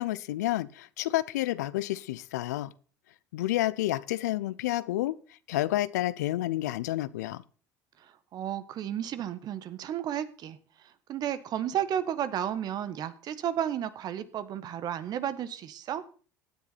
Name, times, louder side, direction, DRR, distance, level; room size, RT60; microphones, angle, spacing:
voice 1, 0.0-2.7 3.3-5.2 5.5-7.4, left 15 dB, 80° left, 0.6 m, -30 dB
voice 2, 8.0-10.6 10.8-16.0, right 10 dB, 50° right, 1.4 m, -33 dB
16.0 x 9.6 x 4.2 m
hypercardioid pair, 80°, 9 cm